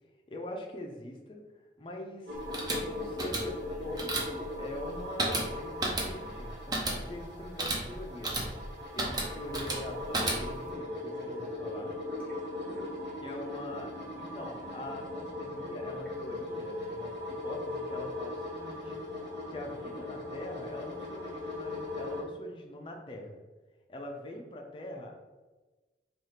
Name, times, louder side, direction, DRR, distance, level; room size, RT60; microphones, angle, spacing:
voice 1, 0.3-1.4 1.8-8.5 8.9-11.9 13.2-13.9 14.2-17.2 17.4-19.0 19.5-23.4 23.9-25.2, left 1 dB, 30° left, 1 dB, 0.5 m, -43 dB
sound 1, 2.3-10.7, right 2 dB, 25° right, 0.6 m, -34 dB
sound 2, 2.3-22.2, left 2 dB, 85° right, 0.8 m, -39 dB
sound 3, 10.6-11.3 11.6-13.6 13.9-16.1, left 1 dB, 10° left, 0.9 m, -51 dB
3.3 x 2.4 x 4.2 m, 1.2 s
head